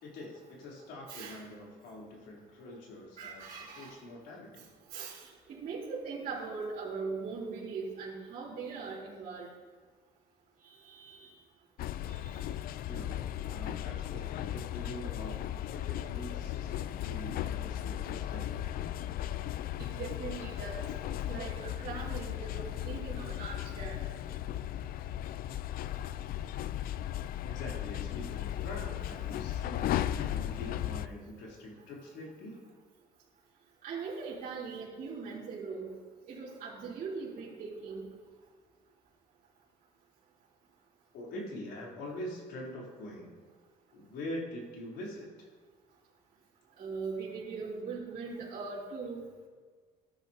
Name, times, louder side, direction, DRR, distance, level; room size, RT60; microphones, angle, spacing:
voice 1, 0.0-3.5 3.8-4.7 12.9-18.6 27.4-32.6 41.1-43.3 43.9-45.5, left 1 dB, 80° left, -3 dB, 3.5 m, -44 dB
voice 2, 1.1-1.4 3.2-3.9 4.9-9.5 10.6-11.3 12.1-12.3 19.8-20.8 21.3-24.0 33.8-35.9 36.3-38.1 46.8-49.2, right 4 dB, 55° right, -10 dB, 3.2 m, -40 dB
sound 1, 11.8-31.1, left 12 dB, 60° left, 0.4 m, -36 dB
14.0 x 10.5 x 2.8 m, 1.5 s
cardioid pair, 110°, 17 cm